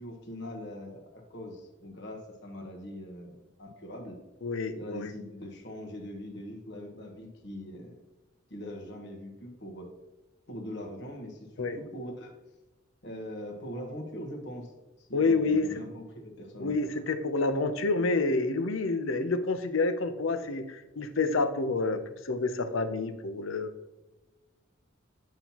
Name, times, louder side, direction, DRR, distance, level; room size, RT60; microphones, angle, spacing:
voice 1, 0.0-4.2 4.8-8.0 8.5-9.9 10.5-12.4 13.0-16.8, equal, 60° left, 1 dB, 1.3 m, -42 dB
voice 2, 4.4-5.1 11.6-11.8 15.1-15.7 16.6-23.7, left 3 dB, 90° left, 10 dB, 0.7 m, -28 dB
8.9 x 5.6 x 2.9 m, 1.1 s
head